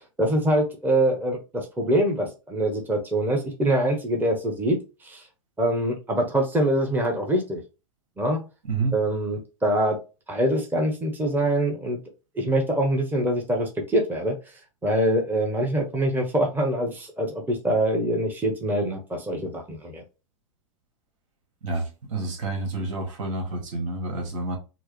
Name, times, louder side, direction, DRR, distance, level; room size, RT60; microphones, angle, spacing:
voice 1, 0.2-5.2 5.6-7.6 8.2-8.4 8.9-10.0 10.3-12.0 12.3-14.4 14.8-20.0, right 1 dB, 10° right, 0.9 m, -24 dB
voice 2, 21.6-24.6, right 3 dB, 65° right, 1.5 m, -29 dB
4.6 x 2.0 x 3.1 m
hypercardioid pair, 105°, 17 cm